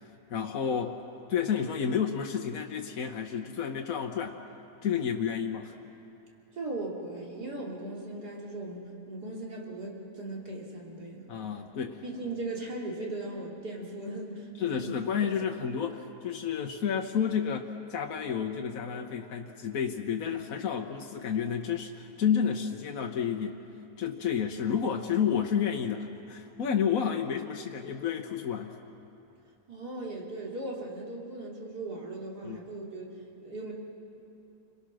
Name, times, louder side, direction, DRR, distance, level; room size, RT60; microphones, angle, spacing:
voice 1, 0.3-1.0 1.3-4.4 4.8-5.7 11.3-12.0 14.6-23.6 24.0-28.8 32.4-32.6, left 7 dB, 65° left, 2 dB, 1.4 m, -30 dB
voice 2, 6.5-11.3 12.0-15.0 29.7-33.7, right 2 dB, 85° right, -3 dB, 3.7 m, -38 dB
30.0 x 22.0 x 6.3 m, 2.9 s
omnidirectional pair, 1.7 m